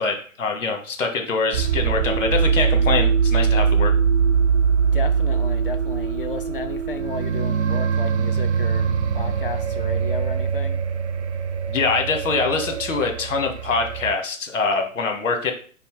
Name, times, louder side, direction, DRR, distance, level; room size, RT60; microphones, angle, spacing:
voice 1, 0.0-3.9 11.7-15.5, left 4 dB, 60° left, 1.3 m, -24 dB
sound 1, 1.5-14.1, right 6 dB, 55° right, 0.6 m, -22 dB
voice 2, 4.9-10.8, left 5 dB, 40° left, 0.5 m, -33 dB
5.3 x 2.1 x 4.5 m
hypercardioid pair, 145°, 43 cm